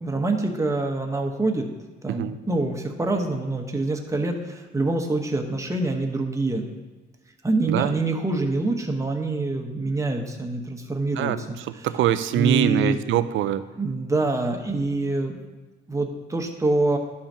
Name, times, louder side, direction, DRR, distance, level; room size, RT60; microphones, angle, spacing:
voice 1, 0.0-1.7 2.0-6.7 7.4-11.9 12.3-13.0 13.8-15.4 15.9-17.0, right 2 dB, 15° right, 3 dB, 1.1 m, -25 dB
voice 2, 11.2-13.6, right 11 dB, 80° right, 12 dB, 0.5 m, -23 dB
11.5 x 5.7 x 2.8 m, 1.2 s
cardioid pair, 90°, 20 cm